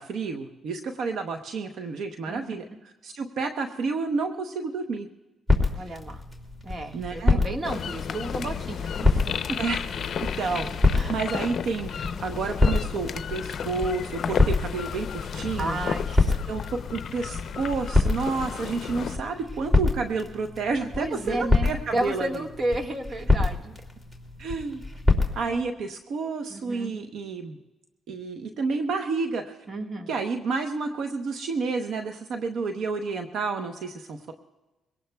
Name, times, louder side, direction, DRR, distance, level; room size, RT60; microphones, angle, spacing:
voice 1, 0.0-5.1 5.8-6.0 6.9-7.4 9.6-9.8 10.2-10.7 11.1-15.8 16.5-22.5 24.4-24.9 25.3-27.6 28.1-29.6 30.1-34.3, right 4 dB, 70° right, 5 dB, 0.9 m, -30 dB
sound 1, 5.5-25.4, left 2 dB, 15° right, 2.7 m, -27 dB
voice 2, 5.7-6.2 6.6-9.6 10.9-11.2 15.6-16.4 21.0-23.7 25.4-25.6 26.5-26.9 29.7-30.1, right 1 dB, 35° right, 4 dB, 1.6 m, -32 dB
sound 2, 7.6-19.2, left 7 dB, 55° left, 0.6 m, -33 dB
23.0 x 18.0 x 2.3 m, 1.1 s
cardioid pair, 90°, 0 cm